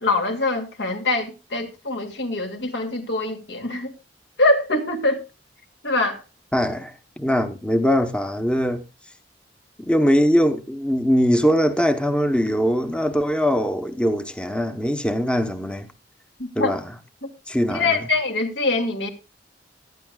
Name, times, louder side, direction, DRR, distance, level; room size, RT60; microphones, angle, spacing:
voice 1, 0.0-3.9 4.4-5.2 5.8-6.2 16.4-16.7 17.2-17.3 17.7-19.1, left 2 dB, 75° left, 2.5 m, -23 dB
voice 2, 6.5-8.8 9.8-15.9 16.6-16.8 17.5-18.1, equal, 5° left, 0.9 m, -21 dB
18.5 x 12.0 x 2.3 m
head